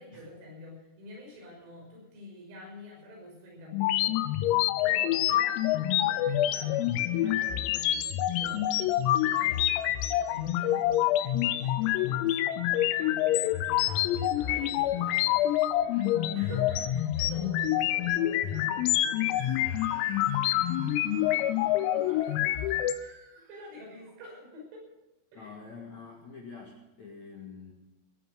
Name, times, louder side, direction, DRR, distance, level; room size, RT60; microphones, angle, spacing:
voice 1, 0.0-4.3 4.8-8.6 9.2-21.0 21.3-21.5 21.9-22.4 23.0-23.2 23.5-24.9 25.3-25.5, left 2 dB, 85° right, -1 dB, 8.5 m, -47 dB
sound 1, 3.7-22.9, left 13 dB, 90° left, 3.5 m, -27 dB
Screaming, 19.3-24.2, right 3 dB, 45° right, 2.1 m, -52 dB
voice 2, 25.3-27.7, left 5 dB, 60° left, -1 dB, 1.9 m, -46 dB
17.5 x 9.2 x 8.2 m, 0.98 s
omnidirectional pair, 6.0 m